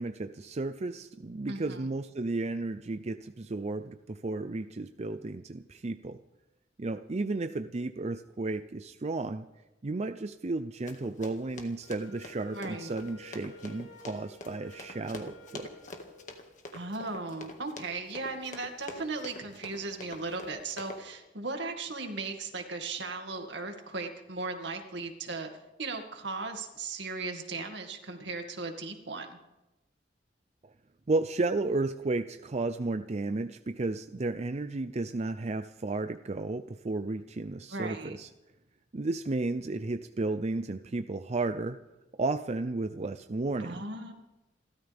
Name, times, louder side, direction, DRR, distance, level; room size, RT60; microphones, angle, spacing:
voice 1, 0.0-6.2 6.8-9.5 9.8-15.7 30.6-30.7 31.1-38.3 38.9-41.8 42.1-43.8, right 2 dB, 35° right, 9 dB, 0.5 m, -33 dB
voice 2, 1.5-1.9 12.5-12.9 16.7-25.5 25.8-29.4 37.7-38.1 43.6-44.1, right 3 dB, 75° right, 4 dB, 2.3 m, -37 dB
Run, 10.9-21.0, left 2 dB, 45° left, 1.9 m, -45 dB
Wind instrument woodwind instrument, 11.8-16.5, left 2 dB, 75° left, 2.6 m, -53 dB
29.0 x 13.0 x 3.5 m, 1.0 s
head